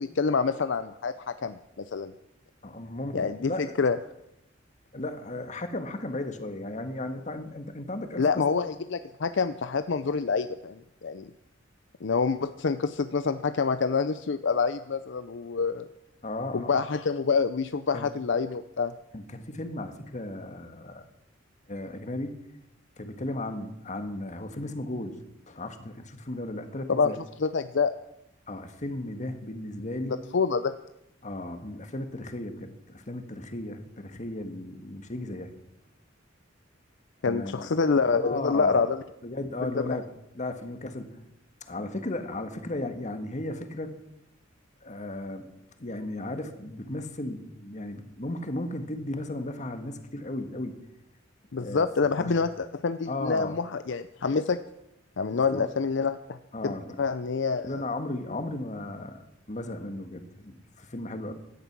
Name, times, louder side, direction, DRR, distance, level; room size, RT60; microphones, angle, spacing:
voice 1, 0.0-1.6 1.9-2.1 3.1-4.0 8.2-11.3 12.0-15.9 16.5-18.9 26.9-27.1 27.4-27.9 30.3-30.7 37.2-39.0 39.6-39.8 51.5-54.6 55.2-56.4 56.6-57.7, left 5 dB, 65° left, 11 dB, 0.6 m, -27 dB
voice 2, 2.6-3.7 4.9-8.4 16.2-16.8 17.9-18.1 19.1-21.0 21.7-22.4 23.0-25.2 25.5-27.2 28.5-30.2 31.2-35.5 37.2-37.7 38.1-38.9 39.2-40.1 40.3-41.2 41.7-44.0 44.8-45.5 45.8-50.8 51.5-51.8 52.2-52.3 53.1-53.6 55.3-55.7 56.5-57.0 57.5-59.2 59.5-61.3, left 1 dB, 40° left, 7 dB, 1.6 m, -35 dB
17.0 x 12.0 x 6.1 m, 0.85 s
head